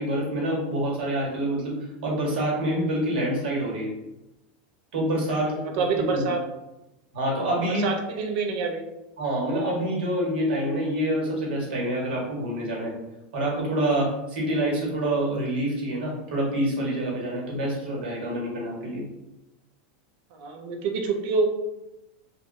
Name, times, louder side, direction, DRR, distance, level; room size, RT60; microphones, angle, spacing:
voice 1, 0.0-1.7 2.0-3.9 4.9-6.3 7.1-7.8 9.2-12.9 13.3-19.0, right 1 dB, 85° right, -3 dB, 1.3 m, -27 dB
voice 2, 5.4-6.4 7.7-8.9 20.3-21.5, right 4 dB, 50° right, 3 dB, 0.5 m, -27 dB
2.9 x 2.4 x 2.5 m, 0.94 s
supercardioid pair, 165°, 6 cm